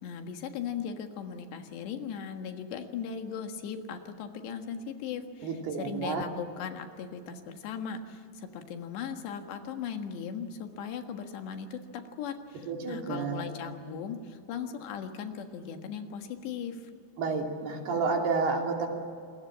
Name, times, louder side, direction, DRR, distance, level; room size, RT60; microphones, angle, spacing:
voice 1, 0.0-16.9, left 7 dB, 80° left, 6 dB, 3.8 m, -38 dB
voice 2, 5.4-6.2 12.7-13.4 17.2-18.9, right 4 dB, 65° right, 2 dB, 4.7 m, -30 dB
27.5 x 22.0 x 7.5 m, 2.4 s
omnidirectional pair, 5.0 m